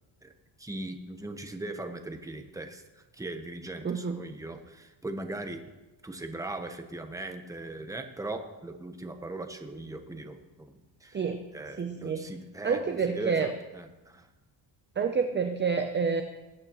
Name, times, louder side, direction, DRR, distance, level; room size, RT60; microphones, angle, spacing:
voice 1, 0.2-5.6 6.0-14.3, right 2 dB, 5° right, 6 dB, 1.0 m, -39 dB
voice 2, 3.8-4.2 11.1-11.4 11.8-12.2 12.6-13.5 15.0-16.2, right 5 dB, 25° right, 6 dB, 0.7 m, -28 dB
20.5 x 8.7 x 3.1 m, 1.1 s
cardioid pair, 120°, 47 cm